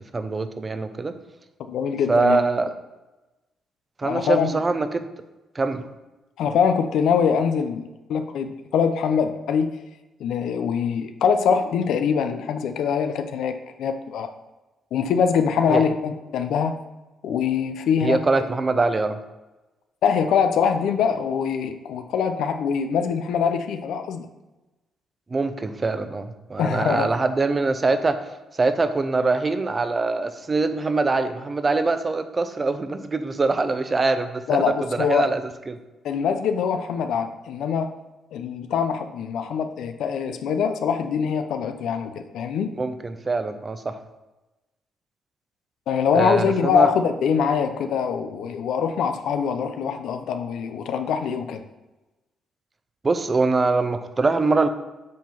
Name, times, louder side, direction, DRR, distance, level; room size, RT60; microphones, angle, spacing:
voice 1, 0.1-1.1 2.1-2.7 4.0-5.1 5.5-5.9 15.7-15.8 18.0-19.2 25.3-28.2 28.5-34.6 35.0-35.4 35.7-35.8 42.8-44.0 46.1-46.9 53.0-54.7, right 3 dB, 30° right, 10 dB, 0.6 m, -23 dB
voice 2, 1.7-2.4 4.0-4.5 6.4-9.7 10.2-14.3 14.9-16.8 17.2-18.2 20.0-24.3 26.6-27.1 34.5-35.3 36.0-37.9 38.3-42.8 45.9-51.6, left 7 dB, 75° left, 7 dB, 0.5 m, -23 dB
7.5 x 3.8 x 5.7 m, 1.1 s
cardioid pair, 90°, 0 cm